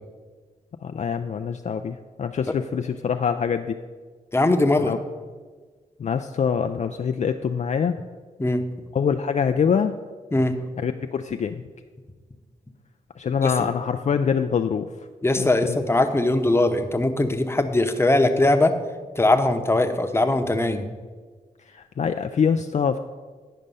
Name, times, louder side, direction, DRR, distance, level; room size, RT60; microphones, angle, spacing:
voice 1, 0.8-3.8 4.9-5.0 6.0-8.0 8.9-9.9 10.8-11.5 13.2-14.9 15.4-15.8 21.7-23.0, left 7 dB, 45° left, 7 dB, 0.4 m, -24 dB
voice 2, 4.3-4.9 8.4-8.6 10.3-10.5 13.4-13.7 15.2-18.7 19.2-20.9, left 2 dB, 15° left, 6 dB, 0.9 m, -21 dB
10.0 x 5.2 x 5.4 m, 1.5 s
supercardioid pair, 50°, 16 cm